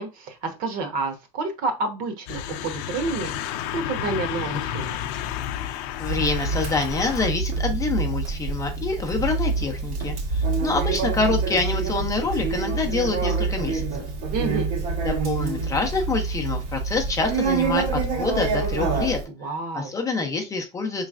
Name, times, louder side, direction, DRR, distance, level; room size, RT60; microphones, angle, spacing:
voice 1, 0.0-5.0 14.3-14.7 19.3-19.9, right 3 dB, 55° right, 6 dB, 1.0 m, -29 dB
sound 1, 2.3-7.3, left 10 dB, 75° left, 0.5 m, -31 dB
voice 2, 6.0-13.9 15.0-19.2 19.7-21.1, left 4 dB, 20° left, 4 dB, 0.5 m, -26 dB
Conversation, 6.1-19.2, right 4 dB, 90° right, 1.6 m, -26 dB
4.9 x 3.1 x 2.4 m, 0.27 s
cardioid pair, 165°, 18 cm